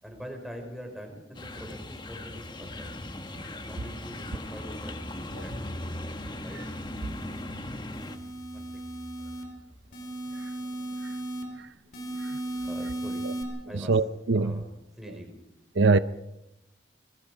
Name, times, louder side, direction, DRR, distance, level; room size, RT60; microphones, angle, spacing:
voice 1, 0.0-2.9 3.6-5.0 5.3-5.7 6.4-6.6 8.5-8.8 12.6-13.2 13.7-13.9 14.3-15.3, equal, ahead, 5.1 m, -43 dB
sound 1, 1.3-8.2, left 1 dB, 25° left, 1.3 m, -38 dB
sound 2, 6.2-14.0, equal, 30° right, 3.4 m, -55 dB
sound 3, 6.3-7.4 7.9-9.4 9.9-11.4 11.9-13.4, right 2 dB, 45° left, 4.7 m, -36 dB
voice 2, 13.7-14.6 15.7-16.0, right 3 dB, 80° right, 0.7 m, -24 dB
26.0 x 21.0 x 5.1 m
head